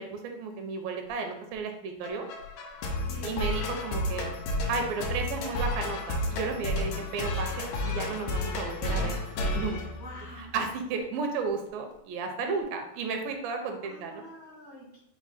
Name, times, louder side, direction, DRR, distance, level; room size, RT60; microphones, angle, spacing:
voice 1, 0.0-2.3 3.2-4.3 4.7-9.2 9.5-9.9 10.4-14.2, right 4 dB, 80° right, 4 dB, 2.3 m, -33 dB
sound 1, 2.0-10.6, left 1 dB, 85° left, 1.6 m, -32 dB
voice 2, 9.9-10.5 13.8-15.0, equal, 55° right, -9 dB, 0.4 m, -46 dB
5.8 x 2.2 x 4.1 m, 0.77 s
omnidirectional pair, 4.2 m